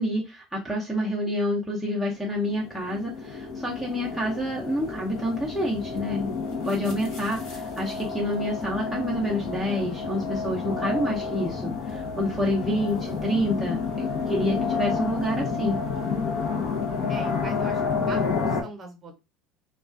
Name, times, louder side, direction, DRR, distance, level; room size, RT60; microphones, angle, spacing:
voice 1, 0.0-6.3 6.6-15.8, equal, ahead, -2 dB, 0.5 m, -28 dB
sound 1, 2.4-18.6, left 5 dB, 70° left, 0.7 m, -30 dB
voice 2, 12.4-12.7 17.1-17.8 18.1-19.2, right 3 dB, 25° right, 2 dB, 0.8 m, -41 dB
2.3 x 2.2 x 2.4 m, 0.26 s
cardioid pair, 135°, 0 cm